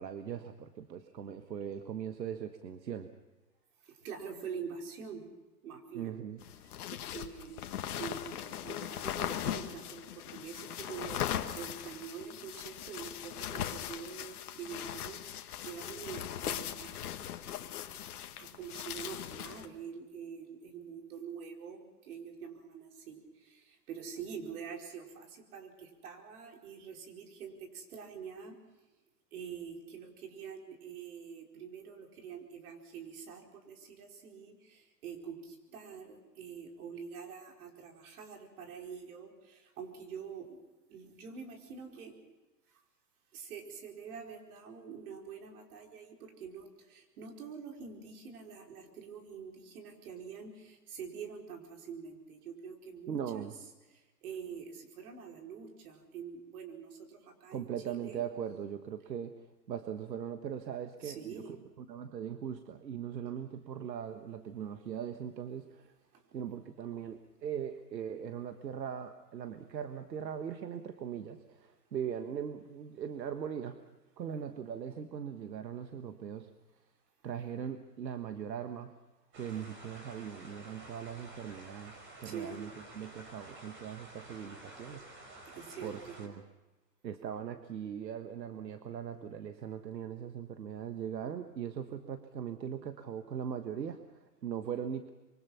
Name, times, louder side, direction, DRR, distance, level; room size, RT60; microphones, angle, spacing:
voice 1, 0.0-3.1 5.9-6.4 53.1-53.6 57.5-59.3 59.7-65.9 66.3-73.8 74.2-76.5 77.2-78.9 79.3-85.6 85.8-86.4 87.0-95.1, right 8 dB, 80° right, 8 dB, 1.5 m, -40 dB
voice 2, 3.8-5.2 5.6-6.2 6.9-17.3 18.4-28.6 29.3-40.6 40.9-42.2 42.7-42.8 43.3-53.5 53.9-58.2 61.0-61.5 66.1-66.2 82.2-82.6 85.5-86.2, right 6 dB, 60° right, 2 dB, 5.0 m, -46 dB
sound 1, 6.4-19.7, left 10 dB, 60° left, 1.7 m, -39 dB
sound 2, 79.3-86.3, right 2 dB, 25° right, 5.2 m, -51 dB
25.5 x 24.0 x 5.8 m, 1.1 s
hypercardioid pair, 125°, 50 cm